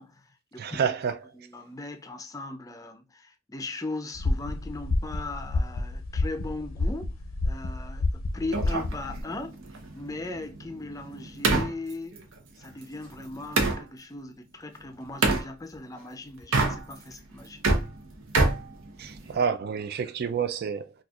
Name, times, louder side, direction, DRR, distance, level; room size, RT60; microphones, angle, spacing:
voice 1, 0.0-0.9 1.3-7.1 7.5-9.6 9.9-12.2 12.6-17.6, left 2 dB, 15° left, 0.4 m, -38 dB
voice 2, 0.6-1.2 19.0-20.9, right 6 dB, 50° right, 0.4 m, -28 dB
sound 1, 4.1-9.2, left 2 dB, 85° left, 0.6 m, -29 dB
sound 2, 8.5-13.8 15.2-15.5 16.4-17.1 17.4-19.4, right 3 dB, 80° right, 0.8 m, -27 dB
4.2 x 2.4 x 2.3 m
head